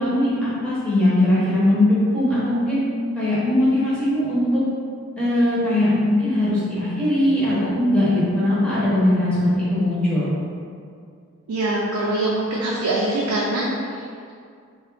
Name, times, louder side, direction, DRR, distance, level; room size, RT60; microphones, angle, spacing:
voice 1, 0.0-2.8 3.1-4.5 5.2-10.3, left 1 dB, 5° left, -11 dB, 0.8 m, -20 dB
voice 2, 11.5-14.3, right 2 dB, 85° right, -4 dB, 0.4 m, -24 dB
2.8 x 2.3 x 3.2 m, 2.3 s
head